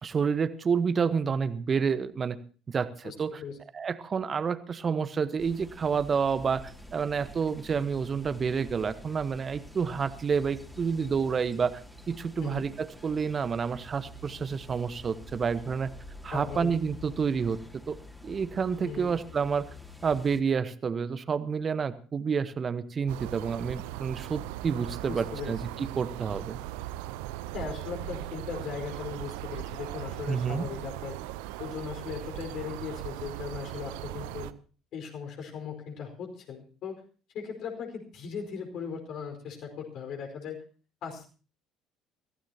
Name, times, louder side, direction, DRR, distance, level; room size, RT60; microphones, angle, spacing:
voice 1, 0.0-2.4 2.7-3.4 3.7-6.6 6.9-11.8 12.1-15.9 16.2-17.6 17.9-18.0 18.2-19.7 20.0-26.6 30.3-30.7, right 6 dB, 35° right, 14 dB, 1.2 m, -29 dB
voice 2, 3.0-3.6 12.4-12.7 16.3-16.7 18.8-19.1 25.1-25.6 27.5-31.2 31.6-34.5 34.9-37.0 37.3-40.6 41.0-41.3, left 6 dB, 55° left, 4 dB, 4.9 m, -38 dB
sound 1, 5.4-20.4, left 1 dB, ahead, 3.2 m, -48 dB
sound 2, 23.1-34.5, right 15 dB, 70° right, 0.7 m, -39 dB
23.5 x 16.0 x 2.9 m, 0.38 s
figure-of-eight pair, 55°, 0 cm